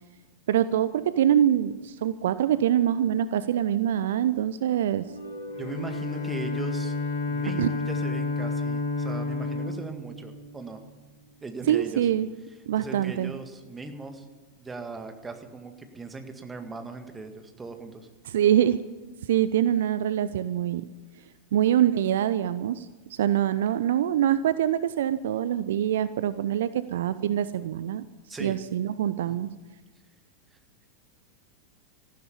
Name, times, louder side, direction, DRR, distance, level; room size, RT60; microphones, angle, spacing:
voice 1, 0.5-5.1 7.6-7.7 11.7-12.3 12.7-13.3 18.2-18.8 19.3-20.8 21.5-28.0 28.4-29.5, right 10 dB, 60° right, 14 dB, 0.5 m, -24 dB
sound 1, 5.0-11.5, right 1 dB, 85° right, 3.9 m, -46 dB
Bowed string instrument, 5.5-11.1, left 3 dB, 55° left, 2.6 m, -31 dB
voice 2, 5.6-6.9 7.3-10.8 11.4-12.1 12.8-14.3 14.6-18.1 28.3-28.6 29.3-29.4, right 3 dB, 15° right, 6 dB, 1.9 m, -39 dB
14.5 x 12.5 x 7.3 m, 1.3 s
figure-of-eight pair, 90°, 0 cm